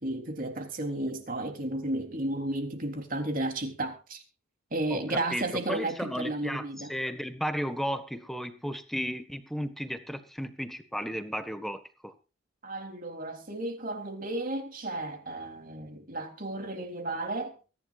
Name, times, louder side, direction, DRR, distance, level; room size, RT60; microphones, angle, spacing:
voice 1, 0.0-4.2 4.7-6.9 12.6-17.6, right 2 dB, 40° right, 3.5 m, -33 dB
voice 2, 4.9-12.1, equal, ahead, 1.6 m, -34 dB
23.5 x 11.0 x 2.5 m
head